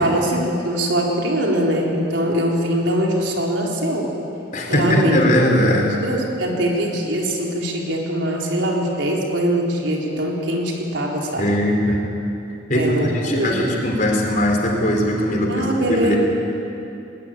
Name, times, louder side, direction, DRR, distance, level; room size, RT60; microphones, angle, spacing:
voice 1, 0.0-4.1 4.7-5.3 6.0-11.5 12.7-13.6 15.5-16.2, right 1 dB, 75° right, -1 dB, 4.1 m, -22 dB
voice 2, 4.5-6.0 11.4-12.0 12.7-16.2, equal, 45° left, 1 dB, 4.1 m, -20 dB
21.5 x 20.0 x 9.2 m, 2.8 s
head